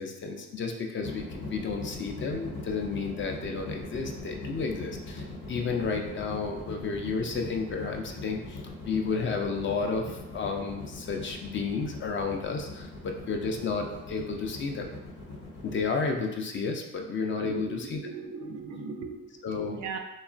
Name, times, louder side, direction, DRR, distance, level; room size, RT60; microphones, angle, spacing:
voice 1, 0.0-14.9 15.6-18.0 19.4-19.8, left 4 dB, 40° left, 3 dB, 0.4 m, -32 dB
sound 1, 1.0-15.8, left 3 dB, 70° left, 0.9 m, -41 dB
voice 2, 17.4-20.0, right 4 dB, 75° right, 4 dB, 0.4 m, -38 dB
3.0 x 2.3 x 2.4 m, 0.96 s
cardioid pair, 90°, 30 cm